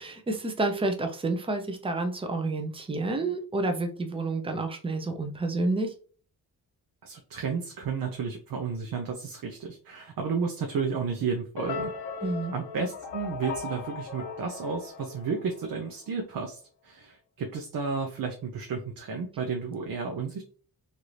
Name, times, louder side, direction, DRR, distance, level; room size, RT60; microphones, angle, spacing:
voice 1, 0.0-5.9 12.2-12.5, right 2 dB, 15° right, 5 dB, 0.5 m, -29 dB
voice 2, 7.0-11.9 12.5-16.6 16.8-20.4, right 5 dB, 65° right, 2 dB, 0.6 m, -32 dB
sound 1, 11.6-15.9, left 5 dB, 90° left, 0.8 m, -38 dB
3.3 x 2.5 x 2.8 m, 0.41 s
wide cardioid pair, 135°, 37 cm